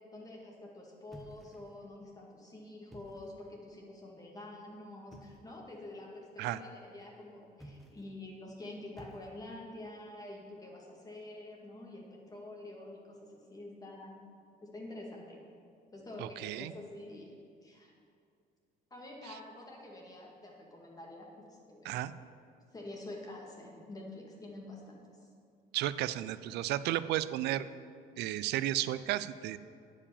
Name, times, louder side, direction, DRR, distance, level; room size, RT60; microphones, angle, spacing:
voice 1, 0.1-14.2 14.6-15.4 15.9-17.4 17.6-17.9 18.9-22.0 22.7-25.3, left 1 dB, 20° left, -1 dB, 2.1 m, -47 dB
sound 1, 1.1-1.9 2.8-3.5 5.1-5.5 7.5-8.2 8.9-9.7, right 1 dB, ahead, 1.1 m, -54 dB
voice 2, 16.2-16.7 21.8-22.1 25.7-27.6 28.2-29.6, right 14 dB, 80° right, 15 dB, 0.4 m, -33 dB
9.8 x 5.0 x 7.0 m, 2.3 s
cardioid pair, 110°, 17 cm